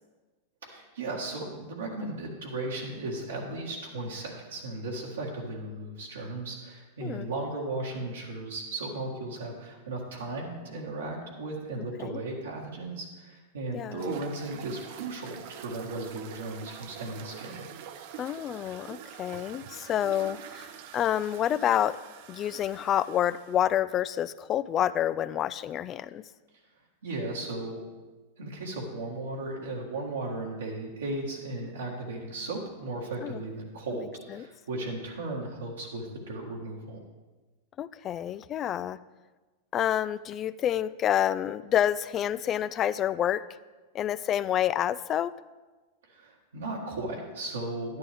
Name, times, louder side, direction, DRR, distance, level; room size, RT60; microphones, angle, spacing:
voice 1, 0.6-17.6 27.0-27.8 28.4-37.0 46.0-48.0, right 2 dB, 85° right, -4 dB, 1.8 m, -36 dB
sound 1, 14.0-23.6, right 9 dB, 60° right, 0.7 m, -45 dB
voice 2, 18.2-22.0 22.3-26.2 33.2-33.4 37.8-39.0 39.7-43.4 43.9-45.3, left 11 dB, 35° left, 16 dB, 0.4 m, -28 dB
11.0 x 10.5 x 3.6 m, 1.2 s
hypercardioid pair, 100°, 0 cm